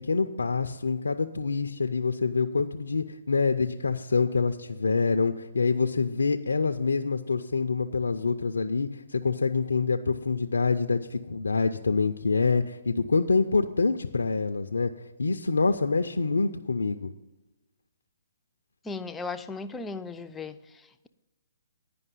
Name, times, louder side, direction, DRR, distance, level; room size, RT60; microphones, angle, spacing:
voice 1, 0.0-14.9 15.2-17.1, left 4 dB, 90° left, 0.5 m, -26 dB
voice 2, 18.8-21.1, left 3 dB, 10° left, 0.4 m, -37 dB
10.0 x 5.3 x 8.3 m
hypercardioid pair, 145°, 0 cm